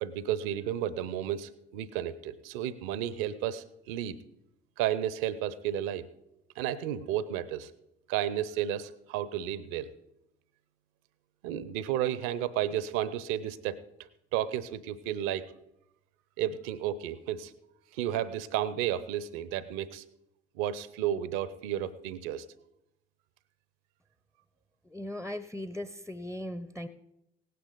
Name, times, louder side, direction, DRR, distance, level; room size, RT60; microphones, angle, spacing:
voice 1, 0.0-4.2 4.8-6.1 6.6-7.7 8.1-9.9 11.4-13.8 14.3-15.5 16.4-17.5 17.9-20.0 20.5-22.4, right 11 dB, 70° right, 17 dB, 0.8 m, -32 dB
voice 2, 24.8-26.9, left 1 dB, 5° left, 11 dB, 0.6 m, -38 dB
17.5 x 9.4 x 4.0 m, 0.84 s
figure-of-eight pair, 45°, 29 cm